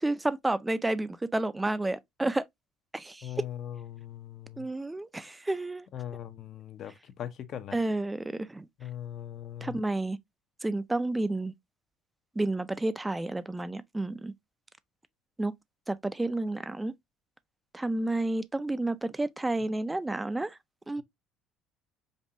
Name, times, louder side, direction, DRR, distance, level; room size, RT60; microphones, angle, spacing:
voice 1, 0.0-2.4 2.9-3.3 4.6-5.9 7.7-8.7 9.6-10.2 10.6-11.5 12.4-14.3 15.4-15.5 15.9-16.9 17.7-20.6 20.9-21.0, right 2 dB, 10° right, 0.4 m, -30 dB
voice 2, 3.2-4.6 5.9-6.9 7.2-7.8 8.8-9.8, left 11 dB, 50° left, 0.7 m, -40 dB
5.3 x 2.4 x 2.7 m
cardioid pair, 110°, 0 cm